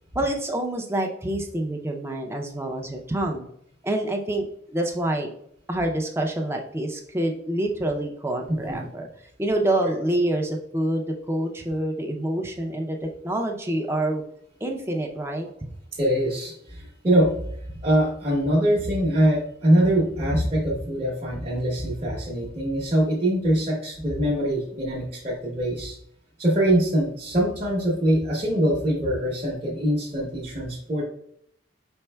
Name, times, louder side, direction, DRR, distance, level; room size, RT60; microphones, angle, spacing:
voice 1, 0.1-3.5 3.8-4.5 4.7-5.3 5.7-9.1 9.4-14.2 14.6-15.5, right 1 dB, 15° right, 2 dB, 0.4 m, -27 dB
voice 2, 15.9-17.3 17.8-26.0 26.4-31.0, right 1 dB, 30° right, -6 dB, 0.8 m, -23 dB
4.9 x 4.3 x 2.2 m, 0.69 s
head